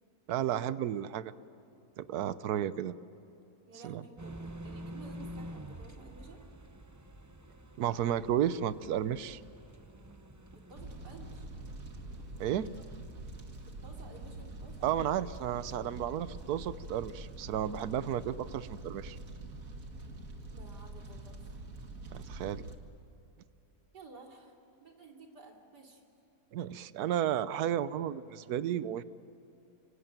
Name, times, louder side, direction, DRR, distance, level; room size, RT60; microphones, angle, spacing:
voice 1, 0.3-1.3 2.0-3.0 3.8-4.0 7.8-9.4 12.4-12.7 14.8-19.2 22.1-22.6 26.5-29.0, right 10 dB, 70° right, 15 dB, 1.3 m, -33 dB
voice 2, 3.7-6.4 10.5-11.5 13.8-15.1 20.5-21.5 23.9-24.5 24.8-26.0, right 3 dB, 90° right, 1 dB, 3.7 m, -53 dB
sound 1, 4.2-18.6, right 1 dB, 15° right, 0.6 m, -50 dB
Fire, 10.8-22.7, right 2 dB, 55° right, 2.4 m, -45 dB
26.0 x 25.5 x 9.0 m, 2.9 s
omnidirectional pair, 1.7 m